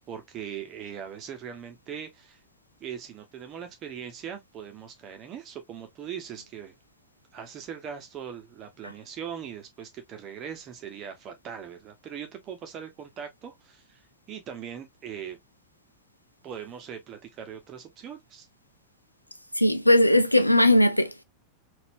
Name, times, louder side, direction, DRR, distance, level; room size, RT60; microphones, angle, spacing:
voice 1, 0.1-2.4 2.8-6.7 7.3-14.0 14.3-15.4 16.4-18.5, right 8 dB, 30° right, 1.1 m, -40 dB
voice 2, 19.6-21.2, left 1 dB, 85° left, 0.4 m, -19 dB
4.2 x 2.7 x 2.6 m
figure-of-eight pair, 90°, 0 cm